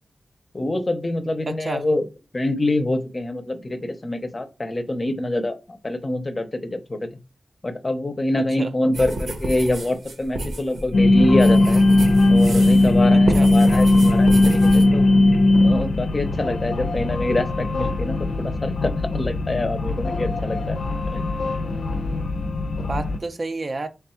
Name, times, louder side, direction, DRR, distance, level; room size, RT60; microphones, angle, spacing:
voice 1, 0.5-2.1 2.3-7.0 7.6-11.8 12.3-15.1 15.6-20.8 21.1-21.3, left 1 dB, 35° left, 0.6 m, -25 dB
voice 2, 1.5-1.8 8.6-8.7 13.1-13.5 22.0-22.2 22.9-23.9, right 3 dB, 45° right, 0.4 m, -30 dB
sound 1, 8.9-12.9 13.2-14.8, right 1 dB, 85° right, 1.0 m, -31 dB
sound 2, 10.9-23.2, left 2 dB, 85° left, 0.6 m, -19 dB
3.4 x 2.3 x 4.2 m
wide cardioid pair, 80°, 0 cm